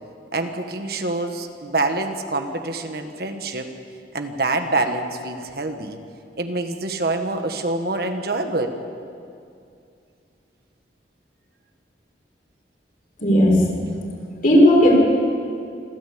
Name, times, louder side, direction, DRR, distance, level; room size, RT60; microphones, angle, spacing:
voice 1, 0.3-3.7 4.1-6.0 6.4-8.8, right 2 dB, 60° right, 6 dB, 1.6 m, -26 dB
voice 2, 13.2-13.6 14.4-14.9, equal, 50° left, -2 dB, 5.6 m, -14 dB
26.5 x 13.5 x 8.6 m, 2.4 s
head